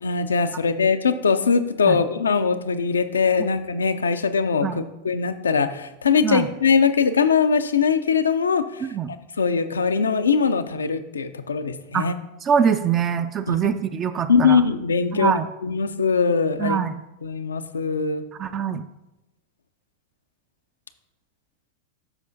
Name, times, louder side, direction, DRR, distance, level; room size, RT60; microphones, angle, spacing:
voice 1, 0.0-8.8 9.4-12.1 13.5-13.6 14.3-15.3 15.6-16.8 17.2-18.2, left 5 dB, 85° left, 11 dB, 0.5 m, -21 dB
voice 2, 12.4-14.6 15.1-15.5 16.6-17.0 18.4-18.8, right 7 dB, 30° right, 9 dB, 0.4 m, -23 dB
13.0 x 4.9 x 2.6 m, 0.93 s
hypercardioid pair, 95°, 0 cm